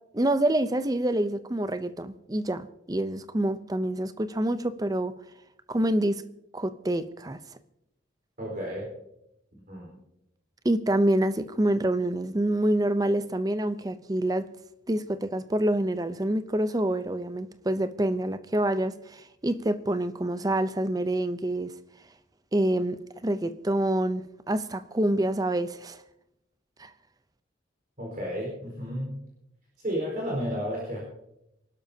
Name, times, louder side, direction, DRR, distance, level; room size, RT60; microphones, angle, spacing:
voice 1, 0.1-5.1 5.7-6.2 6.5-7.4 10.6-14.5 14.9-21.7 22.5-26.0 26.8-26.9, right 1 dB, 20° right, 0.6 m, -27 dB
voice 2, 8.4-8.9 9.7-9.9 28.0-29.2 29.8-31.0, equal, 45° right, 4.5 m, -32 dB
25.5 x 12.0 x 2.8 m
head